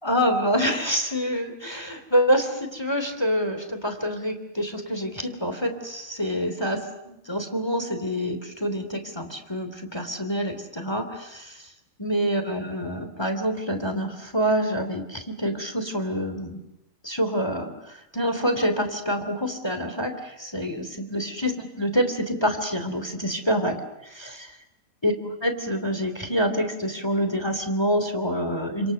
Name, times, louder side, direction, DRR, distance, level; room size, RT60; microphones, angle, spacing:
voice 1, 0.0-11.7 12.0-16.6 17.0-24.5 25.0-28.9, equal, 10° left, 8 dB, 2.1 m, -27 dB
29.5 x 27.0 x 6.8 m, 0.88 s
omnidirectional pair, 4.6 m